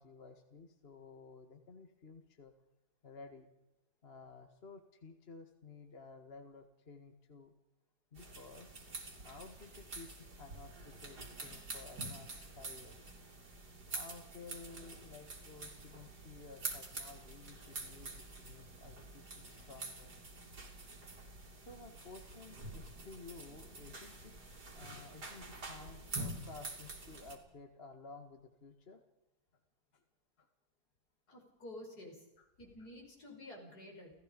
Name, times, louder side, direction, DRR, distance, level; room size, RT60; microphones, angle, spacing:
voice 1, 0.0-2.5 3.0-3.5 4.0-7.5 8.1-8.8 9.2-13.1 13.9-20.5 21.3-21.4 21.7-24.3 24.7-29.0 29.9-30.0 30.4-30.5 31.3-31.4 32.4-32.5, left 4 dB, 40° left, 6 dB, 1.9 m, -54 dB
sound 1, 8.2-27.4, right 2 dB, 85° right, 4.2 m, -47 dB
voice 2, 31.3-32.2 32.6-34.1, left 1 dB, 70° left, 1 dB, 6.2 m, -50 dB
29.5 x 17.0 x 5.3 m, 0.92 s
omnidirectional pair, 1.7 m